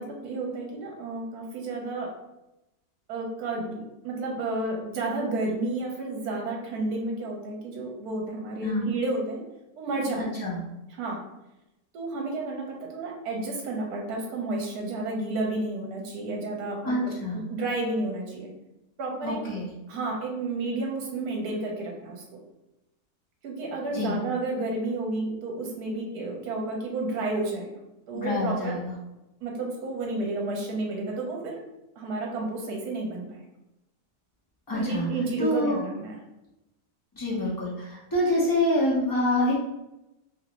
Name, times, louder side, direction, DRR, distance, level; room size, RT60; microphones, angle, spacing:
voice 1, 0.0-2.1 3.1-9.4 9.8-10.2 11.0-11.2 11.9-17.1 17.5-18.5 19.0-19.4 19.9-22.2 23.4-27.8 28.1-28.7 29.4-31.6 32.0-33.4 34.7-36.1, right 2 dB, 70° right, 0 dB, 1.2 m, -31 dB
voice 2, 16.8-17.4 19.2-19.7 23.9-24.2 28.1-28.9 34.7-35.1 35.4-35.8 37.1-39.6, left 1 dB, 25° left, -6 dB, 0.4 m, -26 dB
3.0 x 2.5 x 2.9 m, 0.93 s
omnidirectional pair, 1.7 m